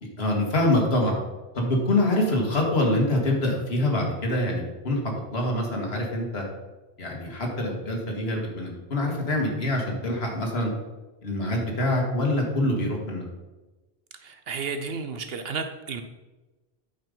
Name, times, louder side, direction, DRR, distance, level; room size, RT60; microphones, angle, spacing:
voice 1, 0.0-1.2 1.5-5.0 5.3-6.4 7.0-10.7 11.2-13.3, left 1 dB, 70° left, 0 dB, 2.1 m, -25 dB
voice 2, 14.2-16.0, right 5 dB, 70° right, 7 dB, 0.9 m, -32 dB
8.8 x 5.6 x 5.3 m, 1.1 s
omnidirectional pair, 1.1 m